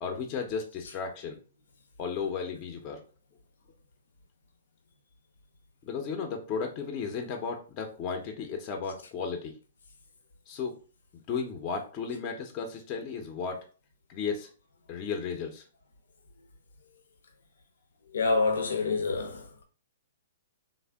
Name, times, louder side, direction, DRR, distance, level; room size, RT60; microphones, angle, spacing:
voice 1, 0.0-1.4 2.0-3.0 5.8-9.5 10.5-10.7 11.3-13.6 14.1-14.5 14.9-15.6, left 5 dB, 35° left, 0.6 m, -34 dB
voice 2, 18.1-19.6, left 3 dB, 80° left, 0.6 m, -28 dB
3.4 x 2.1 x 3.4 m
hypercardioid pair, 135°, 0 cm